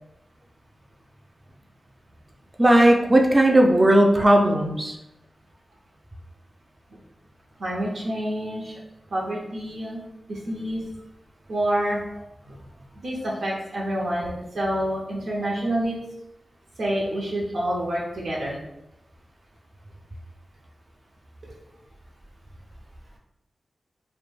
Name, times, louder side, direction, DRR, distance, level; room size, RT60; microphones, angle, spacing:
voice 1, 2.6-4.9, right 1 dB, 20° right, 1 dB, 0.4 m, -17 dB
voice 2, 7.6-8.8 9.1-10.0 10.3-10.8 11.5-12.0 12.5-12.6 13.0-15.9 16.8-18.6 21.4-21.6, right 1 dB, 75° right, -5 dB, 0.6 m, -27 dB
2.2 x 2.1 x 3.1 m, 0.90 s
wide cardioid pair, 95°, 0 cm